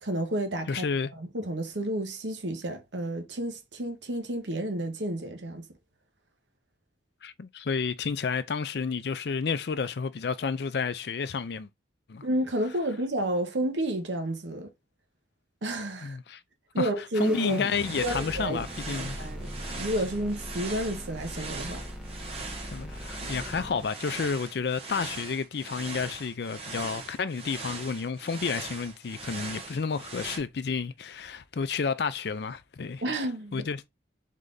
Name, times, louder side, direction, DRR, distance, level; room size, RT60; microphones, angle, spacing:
voice 1, 0.0-0.8 1.2-5.7 12.2-14.7 15.6-16.2 16.7-17.6 18.0-18.6 18.9-21.8 33.0-33.7, right 1 dB, 80° right, 1.0 m, -31 dB
voice 2, 0.7-1.1 7.2-11.7 12.1-12.3 16.0-16.4 16.8-16.9 17.2-19.2 22.7-33.0 33.5-33.8, left 5 dB, 60° left, 0.4 m, -31 dB
sound 1, 17.1-23.9, equal, 5° right, 1.2 m, -39 dB
sound 2, 17.5-30.4, right 3 dB, 30° right, 1.0 m, -40 dB
3.7 x 3.3 x 3.8 m
head